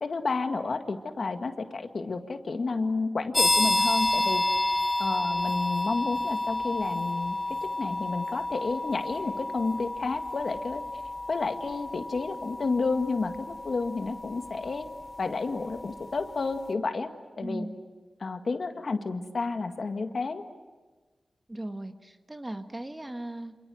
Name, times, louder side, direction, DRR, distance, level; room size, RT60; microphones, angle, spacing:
voice 1, 0.0-4.4 5.0-7.4 7.8-10.8 11.3-14.9 15.2-17.1 17.4-17.7 18.2-20.4, left 3 dB, 60° left, 6 dB, 1.9 m, -31 dB
sound 1, 3.3-15.9, left 2 dB, 25° left, 3.0 m, -30 dB
voice 2, 17.4-17.8 21.5-23.6, right 1 dB, 20° right, 6 dB, 1.6 m, -37 dB
27.5 x 27.5 x 7.8 m, 1.3 s
wide cardioid pair, 95°, 0 cm